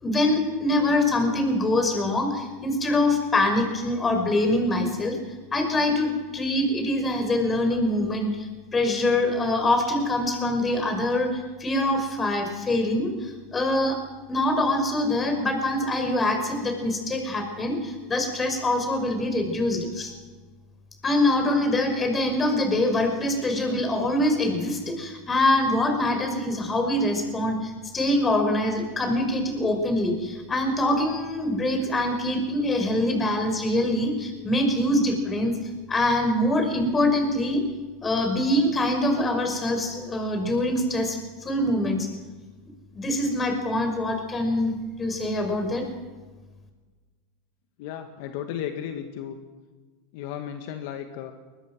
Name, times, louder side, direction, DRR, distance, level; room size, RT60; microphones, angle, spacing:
voice 1, 0.0-5.2 5.5-14.0 14.3-20.1 21.0-35.6 35.9-37.6 38.0-42.1 42.9-44.7 45.0-45.9, left 1 dB, 20° left, 5 dB, 5.6 m, -24 dB
voice 2, 47.8-49.4 50.1-51.3, left 9 dB, 65° left, 6 dB, 1.9 m, -34 dB
22.5 x 19.5 x 6.3 m, 1.3 s
hypercardioid pair, 105°, 0 cm